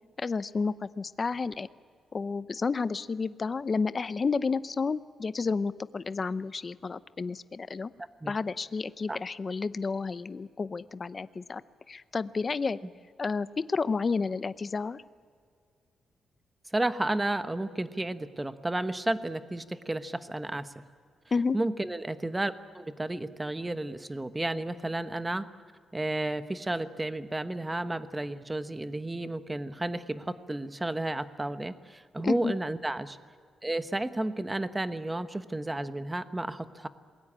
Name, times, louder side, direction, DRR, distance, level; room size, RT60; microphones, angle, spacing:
voice 1, 0.2-1.7 2.1-7.9 8.3-11.6 11.9-12.8 13.2-15.0 21.3-21.6 32.2-32.5, left 4 dB, 30° left, 15 dB, 0.7 m, -31 dB
voice 2, 16.7-20.8 21.5-25.5 25.9-33.2 33.6-36.9, right 2 dB, 10° right, 11 dB, 1.0 m, -32 dB
27.5 x 21.0 x 8.7 m, 2.1 s
cardioid pair, 135°, 0 cm